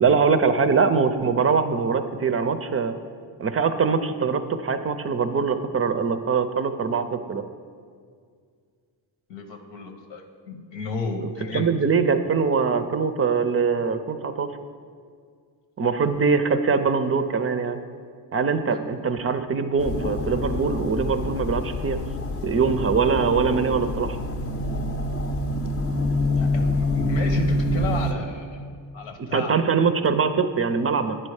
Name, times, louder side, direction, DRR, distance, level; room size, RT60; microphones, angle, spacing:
voice 1, 0.0-3.0 3.4-7.4 11.5-14.5 15.8-17.8 18.3-22.0 22.4-24.2 29.2-31.2, right 5 dB, 35° right, 9 dB, 0.5 m, -22 dB
voice 2, 9.3-11.7 18.7-18.8 26.3-28.6 28.9-29.5, left 3 dB, 85° left, 4 dB, 1.0 m, -32 dB
sound 1, 19.8-28.1, left 2 dB, 35° left, 0.6 m, -26 dB
10.0 x 4.3 x 4.8 m, 2.1 s
cardioid pair, 75°, 44 cm